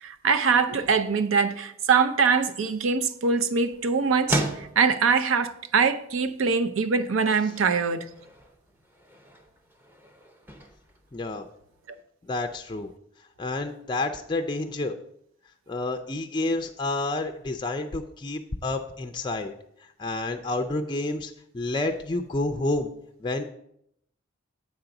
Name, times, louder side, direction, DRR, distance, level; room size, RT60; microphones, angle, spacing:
voice 1, 0.0-8.1, right 5 dB, 90° right, 0.5 m, -23 dB
sound 1, 2.3-12.0, equal, 10° right, 0.6 m, -38 dB
voice 2, 11.1-11.5 12.2-12.9 13.4-14.9 15.7-19.5 19.8-22.9 23.2-23.5, left 2 dB, 25° left, 0.3 m, -29 dB
7.8 x 3.8 x 5.8 m
head